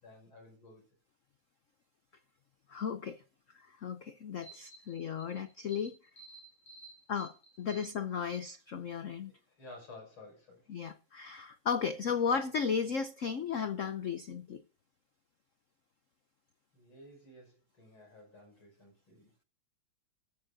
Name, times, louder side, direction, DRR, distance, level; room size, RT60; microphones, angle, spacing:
voice 1, 0.0-0.8 4.4-5.4 5.7-5.9 6.2-7.8 8.2-8.4 9.6-10.6 16.7-19.3, equal, 70° left, 7.2 m, -54 dB
voice 2, 2.7-3.2 3.8-4.4 4.9-5.9 7.1-7.3 7.6-9.3 10.7-14.6, left 6 dB, 90° left, 0.6 m, -34 dB
15.0 x 14.5 x 2.7 m
omnidirectional pair, 2.4 m